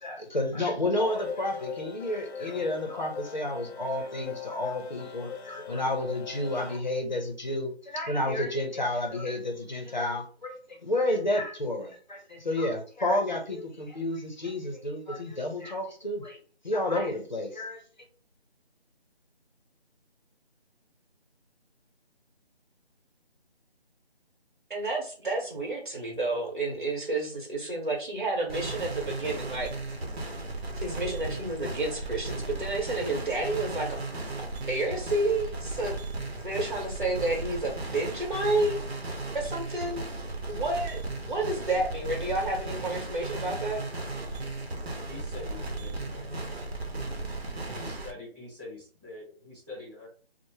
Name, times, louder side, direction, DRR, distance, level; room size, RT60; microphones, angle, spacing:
voice 1, 0.0-16.4 16.6-17.8, left 1 dB, 45° left, 3 dB, 0.6 m, -30 dB
sound 1, 1.0-6.8, left 7 dB, 85° left, 0.5 m, -40 dB
voice 2, 24.7-29.7 30.8-34.0 34.7-35.9 36.4-38.8 39.3-40.1 40.5-41.0 41.3-43.8, right 2 dB, 50° right, 0 dB, 1.1 m, -30 dB
sound 2, 28.5-48.1, right 2 dB, 75° right, 0.8 m, -36 dB
voice 3, 45.1-46.3 47.6-50.1, left 2 dB, 15° right, -11 dB, 0.9 m, -44 dB
2.7 x 2.1 x 3.2 m, 0.41 s
figure-of-eight pair, 180°, 32 cm